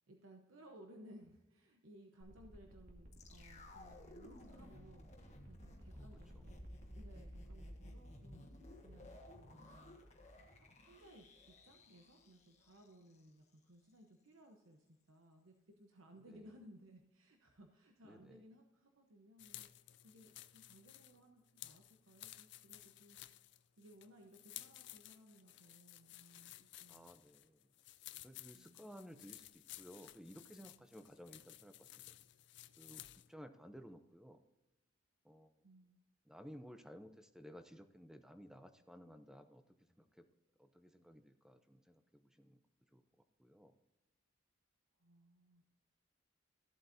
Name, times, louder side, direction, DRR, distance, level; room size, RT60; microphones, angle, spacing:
voice 1, 0.1-8.4 8.8-23.2 23.8-26.5 26.8-27.1 28.5-28.8 35.6-36.0 45.0-45.7, equal, 85° right, 3 dB, 1.0 m, -61 dB
sound 1, 2.2-7.6, equal, 45° right, 2.1 m, -58 dB
sound 2, 3.1-13.3 13.5-13.6, left 1 dB, 35° left, 1.5 m, -56 dB
voice 2, 16.2-16.5 18.0-18.4 26.9-27.7 28.2-32.0 32.8-34.4 35.2-35.6 36.2-39.6 39.9-40.3 40.6-42.6 42.9-43.0 43.4-43.8, equal, 5° right, 8 dB, 0.6 m, -56 dB
sound 3, 19.4-33.3, left 15 dB, 55° left, 0.5 m, -56 dB
14.5 x 7.8 x 2.7 m, 1.0 s
head